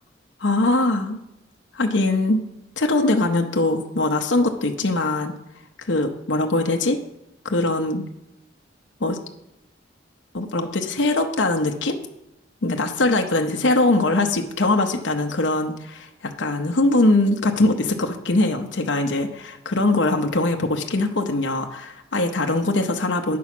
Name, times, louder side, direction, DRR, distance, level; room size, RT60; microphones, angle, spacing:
voice 1, 0.4-1.2 1.7-2.4 2.8-5.3 5.8-7.0 7.4-8.0 9.0-9.2 10.3-12.0 12.6-23.4, left 2 dB, 75° left, 3 dB, 0.8 m, -22 dB
9.3 x 6.2 x 6.0 m, 0.88 s
head